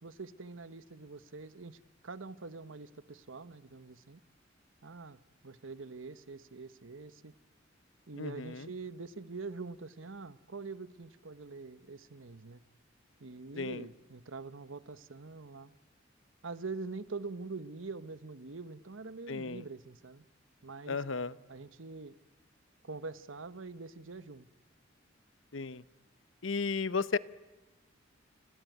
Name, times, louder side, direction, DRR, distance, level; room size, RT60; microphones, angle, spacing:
voice 1, 0.0-4.2 4.8-5.2 5.4-7.3 8.1-12.6 13.2-15.7 16.4-20.2 20.6-21.0 21.5-22.1 22.8-24.5, right 3 dB, 85° right, 15 dB, 1.1 m, -44 dB
voice 2, 8.2-8.7 13.6-13.9 19.3-19.6 20.9-21.3 25.5-25.8 26.4-27.2, left 4 dB, 75° left, 17 dB, 0.9 m, -34 dB
29.5 x 21.5 x 9.2 m, 1.1 s
head